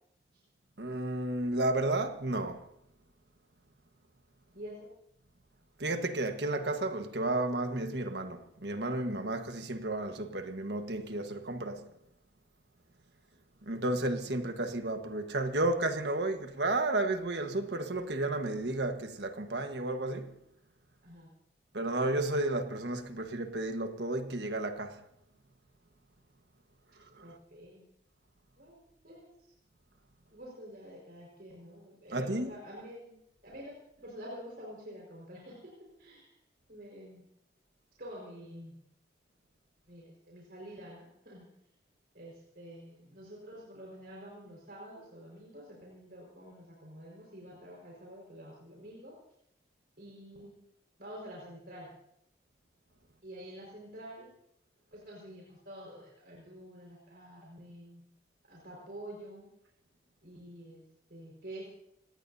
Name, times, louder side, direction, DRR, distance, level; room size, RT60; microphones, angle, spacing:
voice 1, 0.8-2.7 5.8-11.9 13.6-20.4 21.7-25.0 27.1-27.2 32.1-32.5, right 2 dB, 80° right, 1.4 m, -32 dB
voice 2, 4.5-4.9 14.2-14.3 21.0-21.3 27.2-27.8 28.6-29.3 30.3-33.2 33.4-35.7 36.0-36.4 36.7-37.2 38.0-38.8 39.9-41.5 42.1-49.2 50.0-50.6 51.0-51.9 53.2-54.3 54.9-58.0 58.4-59.5 60.2-60.8 61.1-61.6, equal, 60° right, 5.0 m, -48 dB
27.0 x 19.0 x 2.8 m
head